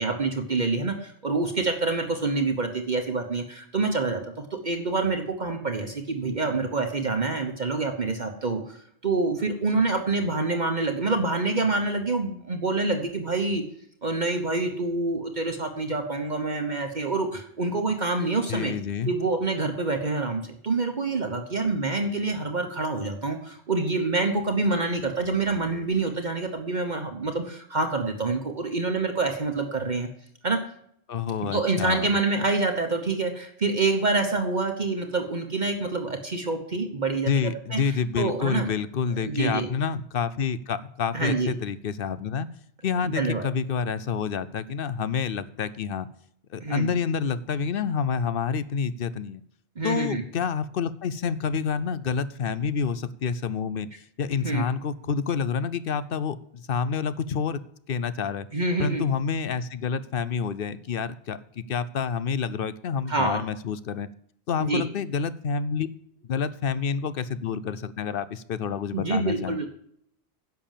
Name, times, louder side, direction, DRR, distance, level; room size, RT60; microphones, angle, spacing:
voice 1, 0.0-8.8 9.0-13.6 14.0-18.7 19.1-30.1 30.4-30.6 31.5-37.8 38.2-38.7 39.2-39.7 41.1-41.5 43.0-43.5 46.6-46.9 49.8-50.2 54.4-54.6 58.5-59.0 63.1-63.4 64.6-64.8 68.9-69.7, right 3 dB, 45° right, 4 dB, 1.2 m, -26 dB
voice 2, 18.5-19.1 31.1-32.1 37.3-42.5 42.8-46.1 46.5-49.4 49.8-57.6 57.9-58.5 58.8-64.1 64.5-65.9 66.3-69.6, left 6 dB, 65° left, 15 dB, 0.8 m, -28 dB
10.5 x 6.9 x 7.4 m, 0.68 s
omnidirectional pair, 1.1 m